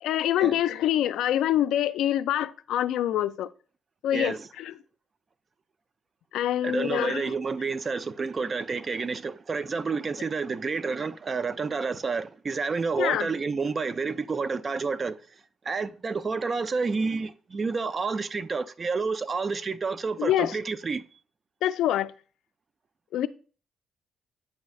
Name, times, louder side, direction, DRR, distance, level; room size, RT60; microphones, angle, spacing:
voice 1, 0.0-3.5 4.0-4.7 6.3-7.3 13.0-13.3 20.2-20.6 21.6-22.1 23.1-23.3, left 12 dB, 85° left, 0.3 m, -25 dB
voice 2, 4.1-4.5 6.6-15.1 15.6-21.0, right 4 dB, 35° right, 0.4 m, -29 dB
8.2 x 5.2 x 2.4 m
cardioid pair, 90°, 0 cm